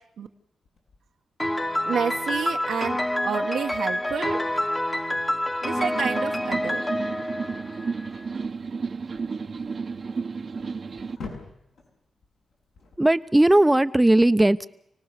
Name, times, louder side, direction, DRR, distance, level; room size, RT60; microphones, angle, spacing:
sound 1, 0.6-13.8, left 4 dB, 80° left, 7.3 m, -49 dB
Piano, 1.4-8.2, left 1 dB, 15° left, 1.3 m, -27 dB
voice 1, 1.8-4.6 5.6-7.3, right 7 dB, 80° right, 3 dB, 1.3 m, -30 dB
sound 2, 5.7-11.2, right 4 dB, 55° right, 1.0 m, -32 dB
voice 2, 13.0-14.7, right 1 dB, 15° right, 12 dB, 0.8 m, -18 dB
29.0 x 18.5 x 6.8 m, 0.78 s
cardioid pair, 60°, 0 cm